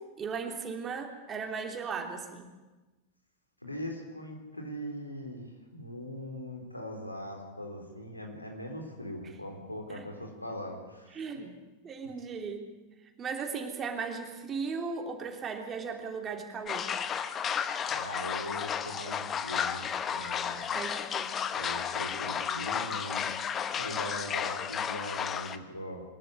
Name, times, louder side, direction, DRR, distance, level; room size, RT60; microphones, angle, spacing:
voice 1, 0.0-2.5 9.9-10.0 11.1-11.6 11.8-12.7 13.2-16.9 20.7-21.3, right 5 dB, 25° right, 4 dB, 3.3 m, -37 dB
voice 2, 3.6-11.4 17.9-20.6 21.5-23.4 23.7-26.0, equal, 85° left, 2 dB, 4.0 m, -41 dB
sound 1, 16.7-25.6, left 7 dB, 25° left, 1.1 m, -33 dB
23.5 x 13.5 x 9.8 m, 1.2 s
figure-of-eight pair, 90°, 0 cm